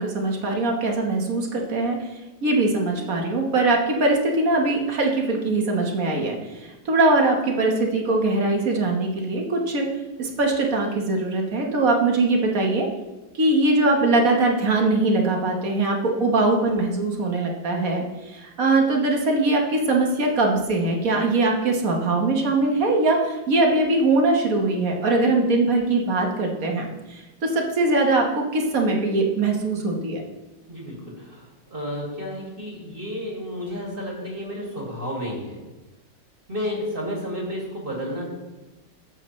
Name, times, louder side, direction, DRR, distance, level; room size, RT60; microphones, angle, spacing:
voice 1, 0.0-2.0 2.4-9.9 10.2-12.9 13.3-30.2, right 2 dB, 50° right, 1 dB, 1.6 m, -22 dB
voice 2, 30.7-35.6 36.5-38.2, equal, 30° right, -2 dB, 2.3 m, -31 dB
13.5 x 7.6 x 3.2 m, 1.1 s
omnidirectional pair, 2.0 m